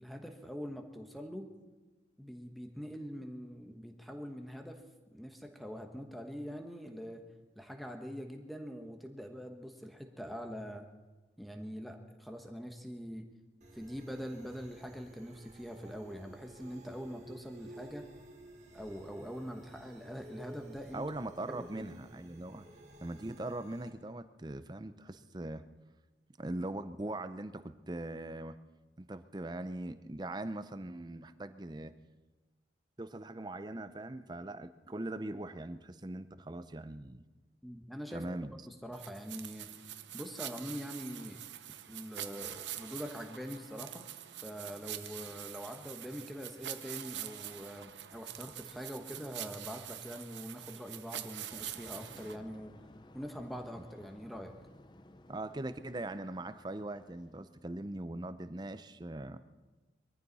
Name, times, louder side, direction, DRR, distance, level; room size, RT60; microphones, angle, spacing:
voice 1, 0.0-1.5 2.2-4.8 5.1-7.2 7.5-10.9 11.4-13.2 13.7-18.0 18.7-21.0 21.5-21.9 37.6-38.2 38.7-39.7 40.1-41.4 41.9-44.1 44.4-52.7 53.1-54.5, equal, ahead, 4 dB, 1.2 m, -44 dB
sound 1, 13.6-23.9, right 1 dB, 40° right, 1.7 m, -54 dB
voice 2, 20.9-22.6 23.0-25.6 26.4-28.6 29.0-31.9 33.0-37.2 38.1-38.5 55.3-59.4, right 2 dB, 25° right, 12 dB, 0.6 m, -41 dB
sound 2, 38.9-52.4, right 12 dB, 85° right, 0.8 m, -45 dB
sound 3, 51.5-58.0, left 1 dB, 25° left, 0.6 m, -58 dB
22.0 x 14.0 x 4.1 m, 1.2 s
head